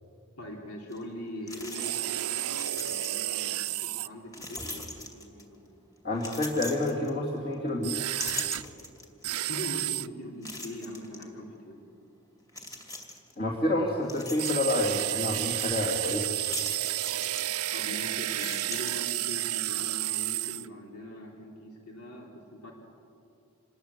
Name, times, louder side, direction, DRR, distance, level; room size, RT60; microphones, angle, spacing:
voice 1, 0.4-5.8 9.5-11.8 17.7-22.7, left 1 dB, 90° left, -1 dB, 3.7 m, -42 dB
sound 1, 0.9-1.0 1.5-2.2 2.5-3.4 4.3-5.6 6.2-7.5 7.9-9.2 9.7-9.8 10.4-11.3 12.5-13.3 13.8-14.9 16.3-17.9 18.2-19.5, left 2 dB, 15° left, 2.6 m, -41 dB
sound 2, 1.7-4.1 7.8-8.6 9.2-10.1 14.4-20.7, right 15 dB, 90° right, 0.6 m, -31 dB
voice 2, 6.0-8.0 13.4-16.3, left 1 dB, 40° left, -3 dB, 2.8 m, -28 dB
27.0 x 20.5 x 8.3 m, 2.6 s
head